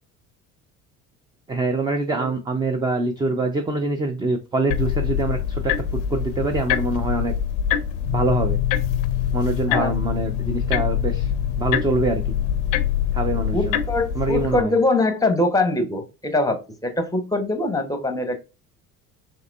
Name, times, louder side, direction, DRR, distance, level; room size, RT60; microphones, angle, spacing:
voice 1, 1.5-5.7 6.1-7.3 8.1-8.6 9.3-11.3 11.6-12.3 13.1-13.8 14.2-14.7, right 2 dB, 10° right, 5 dB, 0.3 m, -24 dB
sound 1, 4.7-14.6, left 9 dB, 60° left, 0.5 m, -25 dB
sound 2, 8.0-13.1, left 12 dB, 55° right, 1.3 m, -30 dB
voice 2, 13.5-18.4, left 2 dB, 10° left, 7 dB, 0.7 m, -23 dB
3.6 x 2.9 x 2.2 m, 0.30 s
figure-of-eight pair, 60°, 41 cm